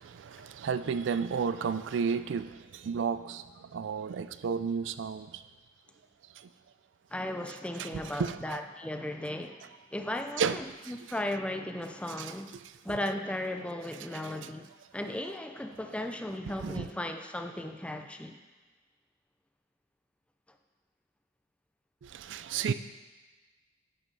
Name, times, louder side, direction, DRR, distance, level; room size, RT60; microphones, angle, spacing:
voice 1, 0.0-5.4 6.4-6.5 7.8-8.6 10.4-10.9 12.2-12.3 14.1-14.2 16.5-16.9 22.0-22.7, right 6 dB, 80° right, 12 dB, 0.4 m, -33 dB
voice 2, 7.1-9.6 9.9-12.5 12.8-14.7 14.9-18.3, left 1 dB, 5° left, 5 dB, 0.4 m, -36 dB
8.9 x 5.5 x 4.7 m, 1.3 s
head